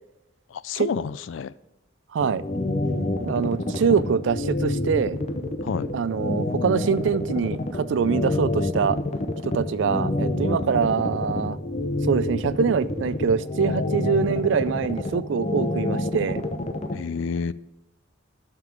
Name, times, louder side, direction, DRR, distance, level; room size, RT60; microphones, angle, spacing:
voice 1, 0.5-1.5 5.6-5.9 16.9-17.5, left 6 dB, 80° left, 18 dB, 0.4 m, -29 dB
voice 2, 2.1-2.4 3.3-5.2 5.9-9.0 9.4-11.6 12.1-16.4, right 6 dB, 70° right, 17 dB, 0.4 m, -24 dB
sound 1, 2.2-16.9, left 2 dB, 35° left, 0.7 m, -27 dB
7.6 x 5.9 x 5.2 m, 0.98 s
head